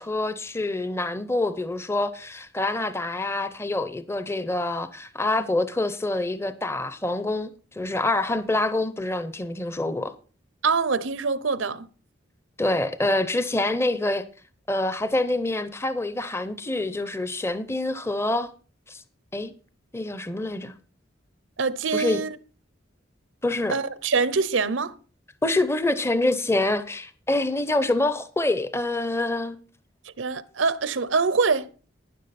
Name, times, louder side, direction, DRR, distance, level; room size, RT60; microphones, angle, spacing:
voice 1, 0.0-10.1 12.6-14.3 14.7-18.5 18.9-19.0 19.3-19.5 19.9-20.7 21.9-22.2 23.4-23.8 25.4-29.6, left 2 dB, 15° left, 0.6 m, -26 dB
voice 2, 10.6-11.9 21.6-22.3 23.7-24.9 30.2-31.7, right 4 dB, 85° right, 0.8 m, -24 dB
12.0 x 9.9 x 4.2 m
head